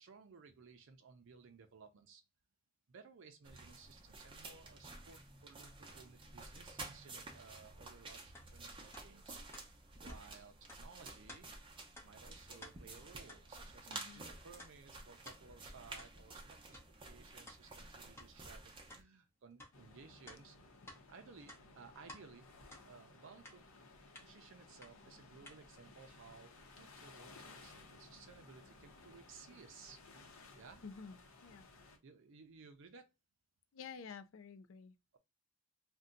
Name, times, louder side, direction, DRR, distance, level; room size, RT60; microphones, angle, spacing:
voice 1, 0.0-2.2 2.9-9.4 10.0-11.5 12.0-20.7 21.1-22.5 22.8-23.6 24.2-30.0 30.6-30.8 32.0-33.1, right 5 dB, 65° right, 0.5 m, -59 dB
sound 1, 3.4-19.0, right 3 dB, 25° right, 0.7 m, -52 dB
sound 2, 8.3-8.5 8.9-9.1 9.5-9.7 10.1-10.2 10.7-10.8 11.3-11.4 12.0-12.1 12.5-12.8 13.3-13.4 13.9-14.1 14.6-14.7 15.3-15.4 16.0-16.1 16.7-16.9 17.5-17.6 18.2-18.3 18.9-19.0 19.6-19.7 20.3-21.0 21.4-22.2 22.7-22.9 23.4-23.6 24.2-24.3 24.8-24.9 25.5-25.6, left 1 dB, 10° left, 0.7 m, -54 dB
voice 2, 13.9-14.3 30.8-31.7 33.7-34.9, left 5 dB, 70° left, 0.4 m, -51 dB
sound 3, 19.7-32.0, left 3 dB, 85° left, 0.8 m, -59 dB
2.6 x 2.2 x 3.7 m
head